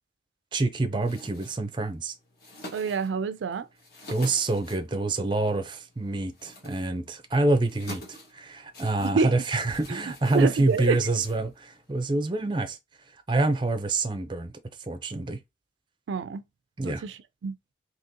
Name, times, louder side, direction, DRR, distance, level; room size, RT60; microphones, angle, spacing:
voice 1, 0.5-2.1 4.1-8.0 8.3-12.8 13.3-14.5 14.9-15.4 16.8-17.0, right 2 dB, 25° right, 0.5 m, -26 dB
sound 1, 1.0-11.9, left 1 dB, 50° left, 1.5 m, -48 dB
voice 2, 2.7-3.7 9.0-9.3 10.3-11.0 16.1-16.4 16.8-17.5, right 5 dB, 80° right, 0.4 m, -27 dB
3.7 x 2.8 x 2.7 m
head